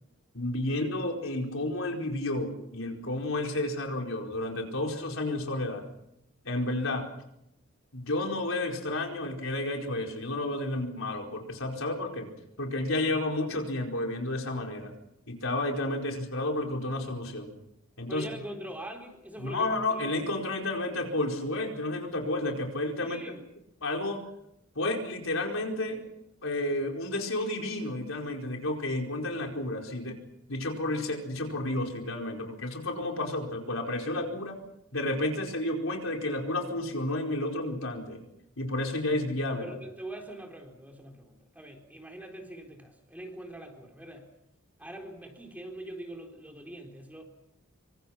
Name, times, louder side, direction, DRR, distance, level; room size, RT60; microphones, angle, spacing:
voice 1, 0.3-5.8 6.4-7.1 7.9-12.3 12.6-14.9 15.3-17.5 18.0-18.2 19.4-23.3 23.8-24.2 24.7-26.0 26.4-30.2 30.5-34.6 34.9-38.2 38.6-39.8, left 2 dB, 70° left, 2 dB, 4.8 m, -31 dB
voice 2, 18.1-20.0 23.0-23.4 39.6-44.3 44.8-47.2, right 1 dB, 5° right, 2 dB, 3.9 m, -43 dB
26.5 x 25.0 x 5.9 m, 0.80 s
head